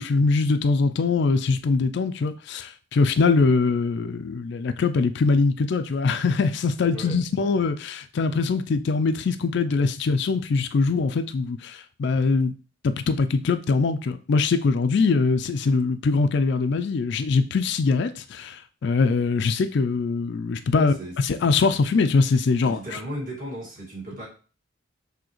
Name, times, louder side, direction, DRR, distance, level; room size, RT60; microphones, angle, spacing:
voice 1, 0.0-12.5 12.8-20.9 21.4-22.8, left 4 dB, 55° left, 0.3 m, -22 dB
voice 2, 20.7-21.1 22.6-24.3, equal, 40° right, 2.0 m, -35 dB
6.1 x 2.8 x 3.0 m
head